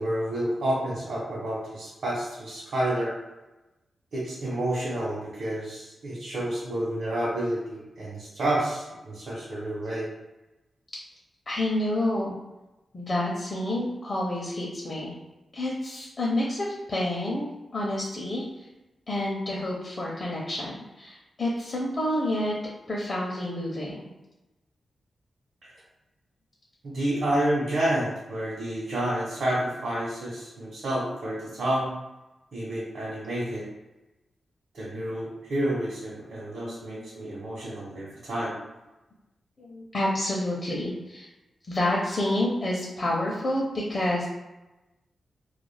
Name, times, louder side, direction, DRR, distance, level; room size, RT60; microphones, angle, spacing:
voice 1, 0.0-3.1 4.1-10.1 25.6-25.7 26.8-31.9 32.5-33.7 34.7-38.5, right 1 dB, 70° right, -8 dB, 0.8 m, -29 dB
voice 2, 11.5-12.4 12.9-15.1 15.5-18.7 19.1-22.5 22.9-24.0 34.9-35.0 36.3-37.1 38.6-38.7 39.6-41.3 41.7-44.3, left 1 dB, 45° left, -4 dB, 0.5 m, -29 dB
2.3 x 2.2 x 3.2 m, 1.0 s
wide cardioid pair, 110°, 0 cm